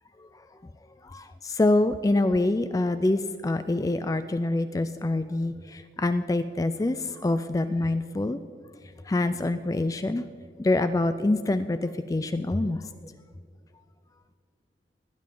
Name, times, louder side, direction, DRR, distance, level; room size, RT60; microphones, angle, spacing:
voice 1, 1.0-8.4 9.1-10.2 10.6-12.9, left 2 dB, 20° left, 11 dB, 0.3 m, -26 dB
19.5 x 10.5 x 3.8 m, 2.3 s
head